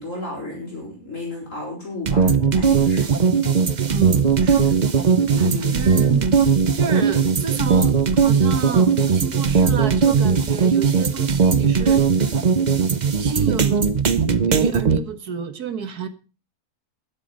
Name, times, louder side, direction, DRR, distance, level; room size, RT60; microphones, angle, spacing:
voice 1, 0.0-3.1 5.3-5.9, left 2 dB, 55° left, -2 dB, 5.8 m, -33 dB
sound 1, 2.1-15.0, right 5 dB, 35° right, 0.8 m, -18 dB
voice 2, 3.9-4.8 5.4-6.3 6.7-12.0 13.2-13.8 14.5-16.1, right 6 dB, 80° right, 10 dB, 2.0 m, -30 dB
12.0 x 11.0 x 5.3 m, 0.34 s
omnidirectional pair, 1.6 m